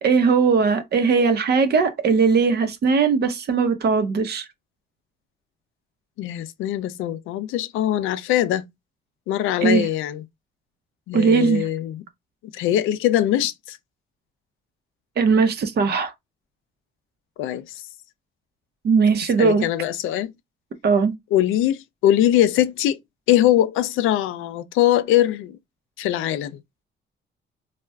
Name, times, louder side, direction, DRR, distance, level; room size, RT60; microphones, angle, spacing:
voice 1, 0.0-4.4 9.6-9.9 11.1-11.7 15.2-16.1 18.8-19.7 20.8-21.1, right 5 dB, 55° right, 0.8 m, -19 dB
voice 2, 6.2-8.7 9.3-10.2 11.1-12.0 12.4-13.8 17.4-17.7 19.4-20.3 21.3-23.0 23.3-25.6 26.0-26.6, left 12 dB, 90° left, 0.4 m, -22 dB
4.3 x 2.3 x 2.3 m
cardioid pair, 90°, 20 cm